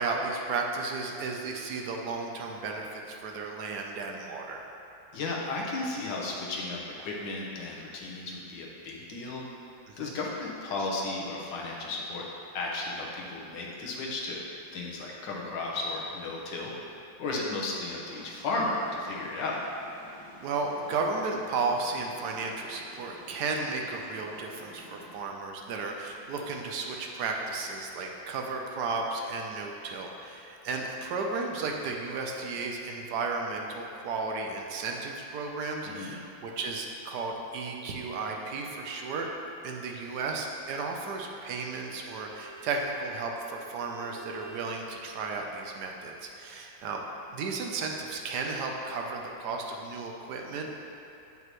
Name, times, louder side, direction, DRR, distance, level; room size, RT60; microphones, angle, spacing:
voice 1, 0.0-4.6 9.9-10.1 20.4-39.3 39.6-47.0 47.3-50.7, right 3 dB, 70° right, 1 dB, 1.2 m, -34 dB
voice 2, 5.1-9.4 10.0-12.2 12.5-16.7 17.2-19.6 35.8-36.2, left 2 dB, 80° left, -2 dB, 1.6 m, -34 dB
sound 1, 17.7-25.1, equal, 60° left, 2.0 m, -51 dB
Bowed string instrument, 41.1-44.8, right 3 dB, 30° right, 0.6 m, -49 dB
8.1 x 5.5 x 3.0 m, 2.7 s
omnidirectional pair, 1.9 m